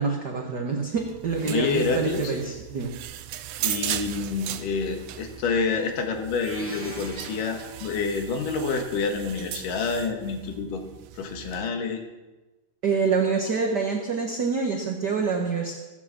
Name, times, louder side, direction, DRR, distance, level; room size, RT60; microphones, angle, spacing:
voice 1, 0.0-2.9 12.8-15.7, right 5 dB, 50° right, 1 dB, 1.3 m, -26 dB
sound 1, 1.0-11.7, right 12 dB, 90° right, 1.5 m, -37 dB
voice 2, 1.4-2.3 3.6-10.8 11.2-12.0, left 4 dB, 80° left, 4 dB, 3.1 m, -28 dB
sound 2, 6.4-8.3, right 1 dB, 5° right, 1.7 m, -42 dB
17.0 x 8.6 x 7.4 m, 1.1 s
omnidirectional pair, 3.8 m